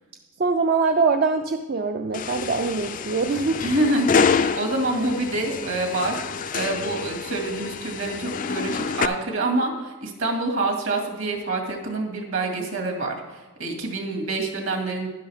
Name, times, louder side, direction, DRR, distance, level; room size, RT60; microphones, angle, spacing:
voice 1, 0.4-3.6, right 4 dB, 45° right, 6 dB, 0.4 m, -23 dB
sound 1, 2.1-9.1, left 5 dB, 40° left, 0.3 m, -27 dB
voice 2, 3.6-15.1, right 2 dB, 65° right, 2 dB, 2.1 m, -26 dB
11.0 x 11.0 x 3.5 m, 1.2 s
head